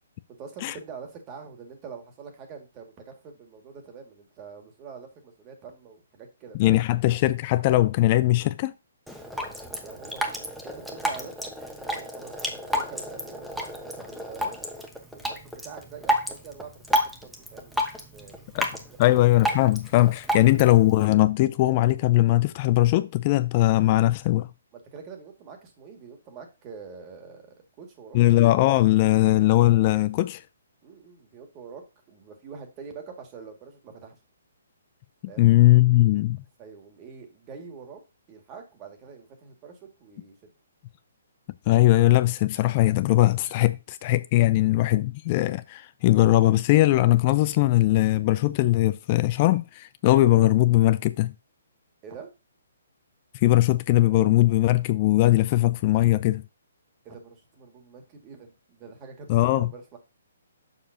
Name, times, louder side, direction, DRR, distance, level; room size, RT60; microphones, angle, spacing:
voice 1, 0.4-6.8 9.8-11.5 11.8-13.4 13.8-14.6 15.1-18.4 20.3-20.4 24.7-28.2 30.8-34.2 35.3-35.5 36.6-38.0 38.3-40.5 52.0-52.3 57.0-60.0, right 6 dB, 25° right, 2.0 m, -45 dB
voice 2, 6.6-8.7 18.5-18.7 19.0-24.5 28.1-30.4 35.4-36.4 41.7-51.3 53.3-56.4 59.3-59.7, left 16 dB, 35° left, 0.4 m, -20 dB
Drip, 9.1-21.1, equal, ahead, 1.1 m, -31 dB
6.9 x 6.8 x 2.7 m
figure-of-eight pair, 130°, 0 cm